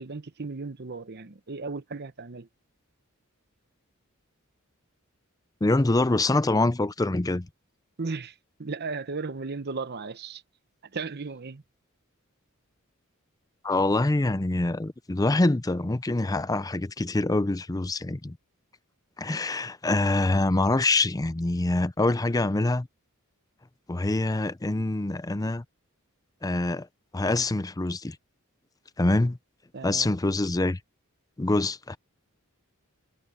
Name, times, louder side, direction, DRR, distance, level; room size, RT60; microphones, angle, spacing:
voice 1, 0.0-2.5 8.0-10.4 10.8-11.6 29.7-30.1, right 4 dB, 50° right, 0.9 m, -35 dB
voice 2, 5.6-7.5 13.6-18.4 19.2-22.9 23.9-25.6 26.4-26.9 27.1-28.2 29.0-29.4 29.8-30.8 31.4-32.0, left 2 dB, 15° left, 0.6 m, -25 dB
head